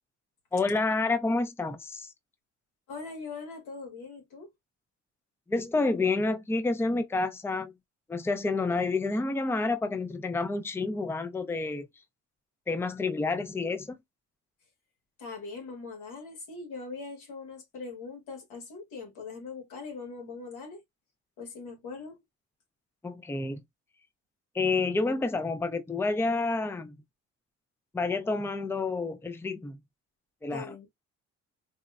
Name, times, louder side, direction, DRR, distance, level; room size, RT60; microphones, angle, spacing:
voice 1, 0.5-2.1 5.5-7.7 8.1-11.9 12.7-14.0 23.0-23.6 24.5-27.0 27.9-29.8 30.4-30.7, left 3 dB, 10° left, 0.5 m, -29 dB
voice 2, 2.9-4.5 15.2-20.8 21.4-22.2 30.5-30.9, left 4 dB, 90° left, 1.4 m, -41 dB
4.1 x 2.0 x 2.4 m
cardioid pair, 90°, 30 cm